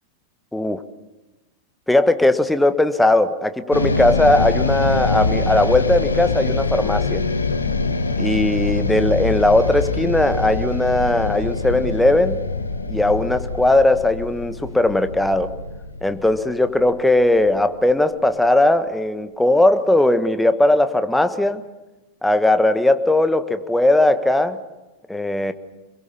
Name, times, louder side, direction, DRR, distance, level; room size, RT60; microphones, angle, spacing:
voice 1, 1.9-7.2 8.2-12.4 12.9-15.5 16.0-21.6 22.2-24.6 25.1-25.5, left 1 dB, 5° left, 10 dB, 1.5 m, -18 dB
sound 1, 3.7-18.0, left 3 dB, 75° left, 1.5 m, -24 dB
27.0 x 22.5 x 7.1 m, 1.1 s
figure-of-eight pair, 90°, 0 cm